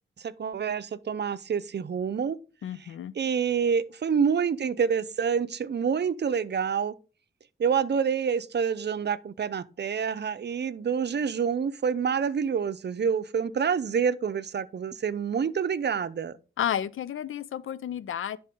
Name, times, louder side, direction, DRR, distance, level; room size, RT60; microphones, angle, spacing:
voice 1, 0.2-2.4 3.2-6.9 7.6-16.3, right 6 dB, 55° right, 0.6 m, -27 dB
voice 2, 2.6-3.1 16.6-18.4, left 9 dB, 80° left, 0.5 m, -31 dB
10.5 x 4.3 x 3.7 m
cardioid pair, 60°, 21 cm